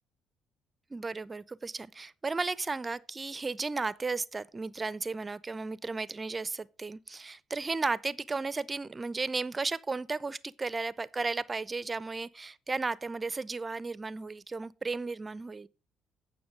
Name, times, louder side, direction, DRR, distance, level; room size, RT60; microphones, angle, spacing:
voice 1, 0.9-15.7, right 3 dB, 30° right, 0.4 m, -34 dB
9.4 x 6.0 x 5.1 m
supercardioid pair, 65°, 0 cm